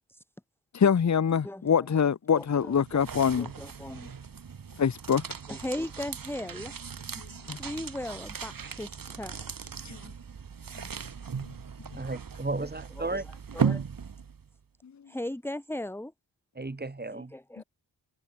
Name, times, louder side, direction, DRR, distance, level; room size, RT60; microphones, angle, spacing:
voice 1, 0.7-3.5 4.8-5.2 7.5-7.6 9.8-10.0, left 7 dB, 40° left, 0.9 m, -24 dB
voice 2, 1.4-2.0 2.3-4.1 5.5-6.7 7.5-9.8 13.0-13.2 13.5-13.8 15.1-16.1 17.1-17.6, left 1 dB, 5° left, 1.9 m, -38 dB
sound 1, 2.4-14.5, right 6 dB, 50° right, 2.0 m, -37 dB
voice 3, 11.9-13.2 16.5-17.3, right 2 dB, 20° right, 4.8 m, -34 dB
wide cardioid pair, 175°, 45 cm